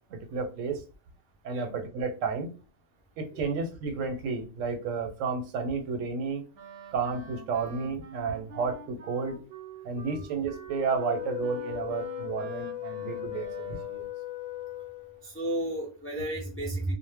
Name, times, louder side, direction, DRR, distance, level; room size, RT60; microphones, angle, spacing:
voice 1, 0.1-0.8 1.4-2.5 3.2-6.4 6.9-9.4 9.8-14.0, right 5 dB, 85° right, 6 dB, 1.0 m, -32 dB
Wind instrument woodwind instrument, 6.5-14.1, right 4 dB, 65° right, 0.7 m, -46 dB
Wind instrument woodwind instrument 2, 10.9-15.3, left 13 dB, 90° left, 1.0 m, -37 dB
voice 2, 15.2-16.9, right 1 dB, 20° left, -2 dB, 0.3 m, -33 dB
2.1 x 2.0 x 3.3 m, 0.34 s
omnidirectional pair, 1.3 m